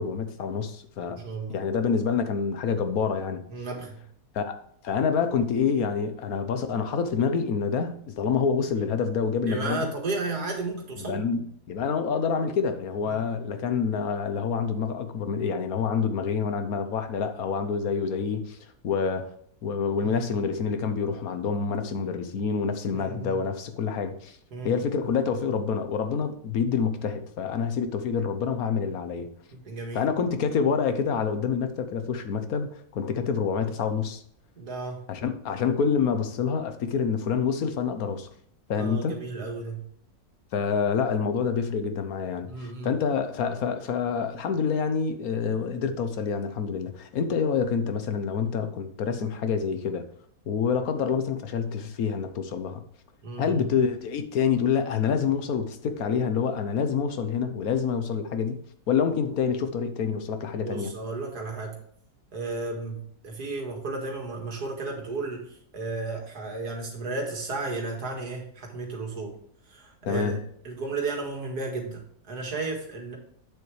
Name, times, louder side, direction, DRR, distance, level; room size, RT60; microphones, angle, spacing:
voice 1, 0.0-1.2 1.5-3.4 4.3-4.5 4.8-9.9 11.0-18.6 18.8-19.3 19.6-24.4 24.6-29.3 29.9-32.7 32.9-34.2 35.1-38.3 38.7-39.2 40.5-50.0 50.5-52.8 53.4-60.9 70.0-70.4, left 6 dB, 70° left, 1.3 m, -27 dB
voice 2, 1.0-1.6 3.5-4.0 9.5-11.3 13.1-13.2 20.0-20.4 22.9-23.4 24.5-24.8 29.5-30.0 34.6-35.0 38.8-39.9 42.5-42.9 53.2-53.6 60.5-61.8 62.3-69.3 69.7-70.4 70.6-73.2, right 3 dB, 90° right, 2.4 m, -34 dB
8.2 x 7.1 x 3.2 m
omnidirectional pair, 1.6 m